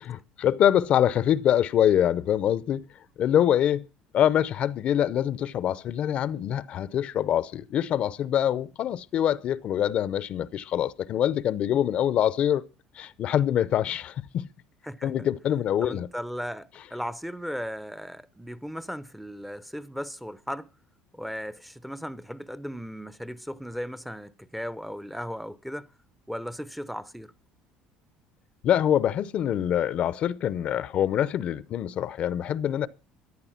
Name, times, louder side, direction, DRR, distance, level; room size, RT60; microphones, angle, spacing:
voice 1, 0.1-2.8 3.2-3.9 4.1-12.6 12.9-14.5 15.0-16.1 28.6-32.9, left 10 dB, 50° left, 0.6 m, -25 dB
voice 2, 14.8-15.3 15.8-20.7 21.1-25.9 26.3-27.3, equal, ahead, 0.6 m, -36 dB
14.0 x 10.5 x 5.8 m
cardioid pair, 130°, 3 cm